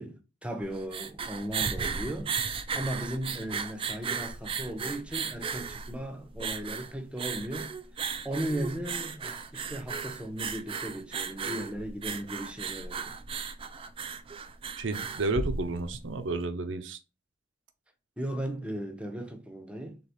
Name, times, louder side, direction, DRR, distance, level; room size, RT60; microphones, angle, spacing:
voice 1, 0.0-2.4 2.7-7.7 8.2-13.2 18.2-20.0, right 1 dB, 5° right, 0.7 m, -36 dB
sound 1, 0.6-16.1, right 5 dB, 30° right, 0.3 m, -35 dB
voice 2, 14.8-17.0, right 2 dB, 75° right, 0.6 m, -31 dB
4.1 x 3.4 x 3.5 m
head